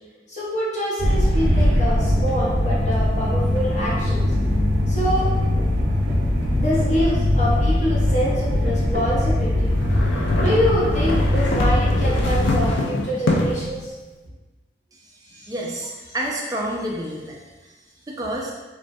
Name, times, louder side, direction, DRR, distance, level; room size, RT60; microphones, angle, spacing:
voice 1, 0.3-4.2 4.9-5.3 6.6-9.7 10.1-13.9 15.3-15.5, equal, 40° left, -7 dB, 0.8 m, -25 dB
sound 1, 1.0-12.7, left 1 dB, 80° right, 0.5 m, -21 dB
sound 2, 9.7-13.7, left 2 dB, 85° left, 0.4 m, -25 dB
voice 2, 15.5-17.4 18.1-18.5, right 1 dB, 20° right, -1 dB, 0.3 m, -28 dB
3.1 x 2.2 x 2.6 m, 1.2 s
head